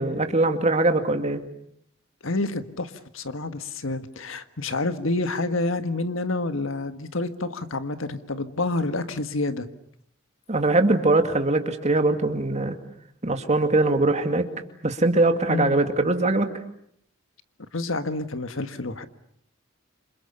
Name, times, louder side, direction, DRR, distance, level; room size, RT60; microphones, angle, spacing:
voice 1, 0.0-1.4 10.5-12.8 13.2-14.5 14.8-16.5, right 2 dB, 35° right, 6 dB, 2.4 m, -22 dB
voice 2, 2.2-9.6 15.5-15.8 17.7-19.1, left 2 dB, 80° left, 10 dB, 1.6 m, -28 dB
28.5 x 27.0 x 7.1 m, 0.69 s
head